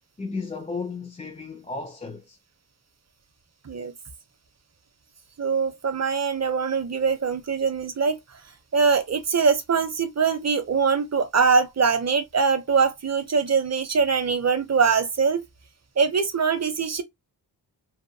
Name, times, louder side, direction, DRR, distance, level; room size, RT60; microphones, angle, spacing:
voice 1, 0.2-2.4, left 4 dB, 15° left, 0.4 m, -34 dB
voice 2, 5.4-8.2 8.7-15.4 16.0-17.0, right 5 dB, 35° right, 0.6 m, -23 dB
2.7 x 2.1 x 2.6 m
wide cardioid pair, 80°, 45 cm